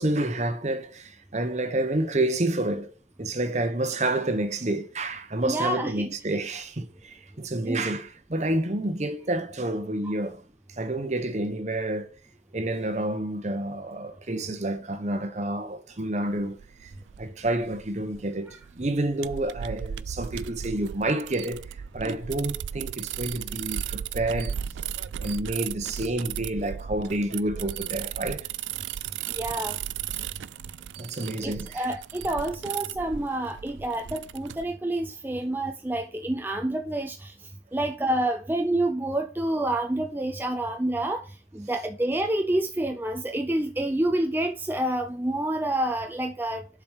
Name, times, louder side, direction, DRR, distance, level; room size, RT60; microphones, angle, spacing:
voice 1, 0.0-2.9 3.2-10.4 10.7-12.1 12.5-16.9 17.2-24.5 25.2-28.5 31.0-31.8, right 1 dB, 40° right, 0.9 m, -29 dB
voice 2, 5.4-6.4 7.6-7.8 10.0-10.1 18.5-18.6 29.3-29.8 31.4-46.7, right 1 dB, 10° right, 0.4 m, -28 dB
sound 1, 16.3-34.7, right 9 dB, 85° right, 0.3 m, -36 dB
7.3 x 4.8 x 4.7 m
head